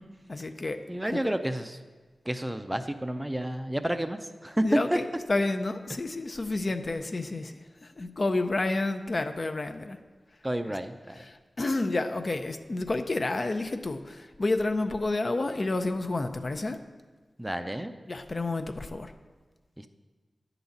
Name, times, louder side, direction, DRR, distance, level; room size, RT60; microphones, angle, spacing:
voice 1, 0.3-0.8 1.1-1.2 4.6-10.0 11.1-16.8 18.1-19.1, left 2 dB, 45° left, 7 dB, 0.5 m, -30 dB
voice 2, 0.9-1.8 2.3-4.6 4.9-5.0 10.4-11.2 17.4-17.9 19.8-19.9, right 1 dB, 10° right, 8 dB, 0.4 m, -31 dB
10.0 x 4.0 x 7.0 m, 1.4 s
wide cardioid pair, 100°, 0 cm